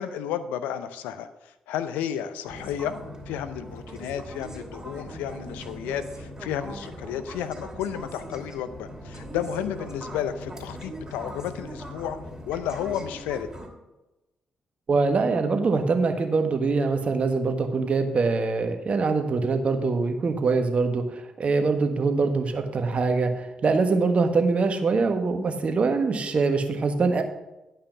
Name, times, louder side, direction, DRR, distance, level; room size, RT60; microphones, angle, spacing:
voice 1, 0.0-2.9 3.3-12.2 12.5-13.5, left 9 dB, 85° left, 12 dB, 0.5 m, -32 dB
sound 1, 2.5-13.7, equal, 20° right, 2.9 m, -40 dB
voice 2, 14.9-27.2, right 4 dB, 50° right, 6 dB, 1.4 m, -23 dB
11.0 x 5.6 x 5.8 m, 0.99 s
hypercardioid pair, 45°, 3 cm